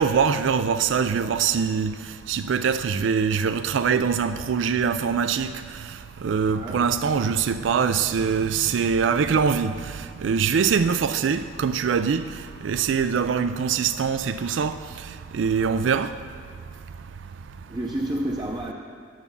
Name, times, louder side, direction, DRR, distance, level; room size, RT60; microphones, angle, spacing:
voice 1, 0.0-1.9 2.3-5.5 6.2-9.7 10.2-12.2 12.6-14.7 15.3-16.1, right 6 dB, 75° right, 0.4 m, -23 dB
voice 2, 17.7-18.7, right 1 dB, 20° right, 0.6 m, -30 dB
10.5 x 7.1 x 6.9 m
head